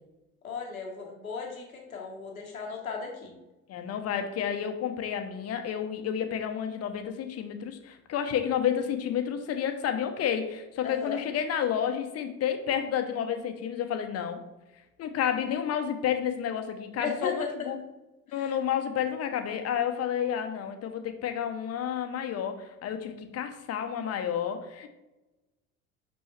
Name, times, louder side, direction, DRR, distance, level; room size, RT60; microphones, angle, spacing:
voice 1, 0.4-3.3 10.8-11.2 17.0-17.5 18.3-18.5, left 5 dB, 85° left, 1 dB, 1.2 m, -36 dB
voice 2, 3.7-14.4 15.0-17.8 18.3-24.9, left 9 dB, 35° left, 7 dB, 0.9 m, -30 dB
5.5 x 5.4 x 3.2 m, 1.0 s
figure-of-eight pair, 65°, 40 cm